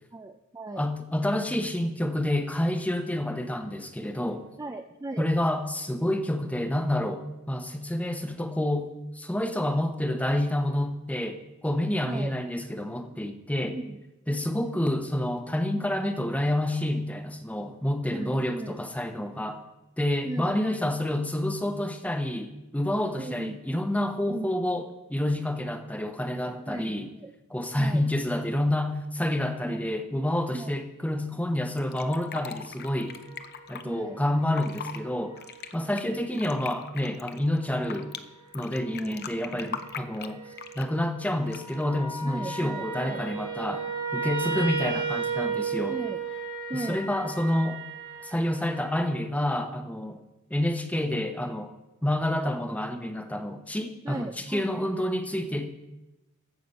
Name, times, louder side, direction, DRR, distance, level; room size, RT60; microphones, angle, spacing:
voice 1, 0.1-0.9 4.6-5.3 12.1-12.3 13.7-14.0 14.3-14.4 14.7-14.8 18.1-18.8 20.2-20.9 23.2-23.6 24.3-24.6 26.7-27.3 27.8-28.0 29.6-29.9 30.5-30.7 33.8-34.2 35.9-36.2 38.9-39.8 42.3-43.2 45.9-46.2 46.7-47.0 54.0-54.7, right 2 dB, 15° right, 6 dB, 0.4 m, -37 dB
voice 2, 0.8-4.4 5.2-8.9 9.1-13.8 14.3-19.6 20.0-27.1 27.5-33.1 33.7-35.4 35.7-38.1 38.5-40.4 40.8-46.0 46.7-47.8 48.2-50.2 50.5-51.7 52.0-55.7, left 1 dB, 5° left, 6 dB, 0.8 m, -28 dB
Fill (with liquid), 31.8-33.8 34.4-35.0 35.4-38.2 38.5-41.0 41.5-41.8, left 7 dB, 45° left, 0.6 m, -40 dB
sound 1, 32.8-36.0 37.0-37.1 37.6-38.0 38.7-39.1 39.4-49.2, right 5 dB, 75° right, 4.7 m, -35 dB
14.5 x 6.8 x 5.4 m, 0.97 s
head